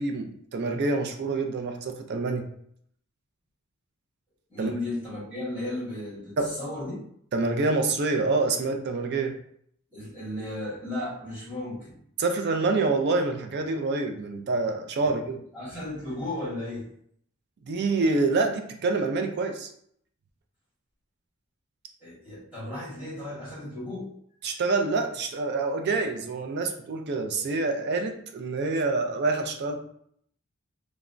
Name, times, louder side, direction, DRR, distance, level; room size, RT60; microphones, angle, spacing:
voice 1, 0.0-2.5 4.6-4.7 6.4-6.6 7.3-9.3 12.2-15.4 17.7-19.7 24.4-29.8, right 3 dB, 50° right, 5 dB, 0.4 m, -26 dB
voice 2, 4.5-7.0 9.9-11.9 15.0-15.1 15.5-16.9 22.0-24.1, left 1 dB, 10° right, -9 dB, 1.4 m, -35 dB
3.3 x 2.0 x 2.5 m, 0.67 s
head